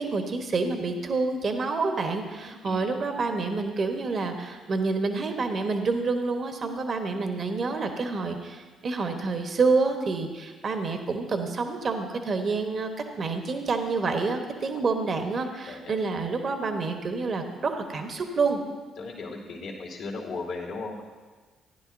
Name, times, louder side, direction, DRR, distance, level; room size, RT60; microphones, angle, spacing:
voice 1, 0.0-12.9 13.2-18.6, right 4 dB, 50° right, 5 dB, 1.1 m, -28 dB
voice 2, 15.7-16.0 19.0-21.0, left 3 dB, 65° left, -1 dB, 2.1 m, -36 dB
15.0 x 10.5 x 2.7 m, 1.4 s
hypercardioid pair, 50°, 0 cm